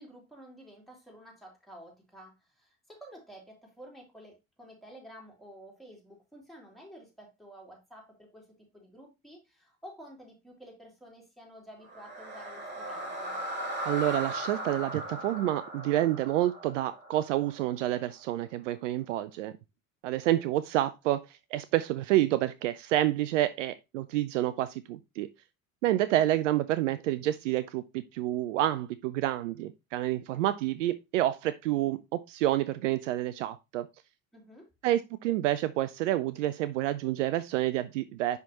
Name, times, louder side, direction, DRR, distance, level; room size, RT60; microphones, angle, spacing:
voice 1, 0.0-8.5 8.7-13.4 34.3-34.7, equal, ahead, 2.9 m, -51 dB
sound 1, 11.8-18.0, right 1 dB, 25° right, 2.8 m, -38 dB
voice 2, 13.8-19.5 20.0-25.3 25.8-33.9 34.8-38.4, right 14 dB, 65° right, 0.5 m, -28 dB
10.0 x 3.5 x 2.9 m
figure-of-eight pair, 65°, 41 cm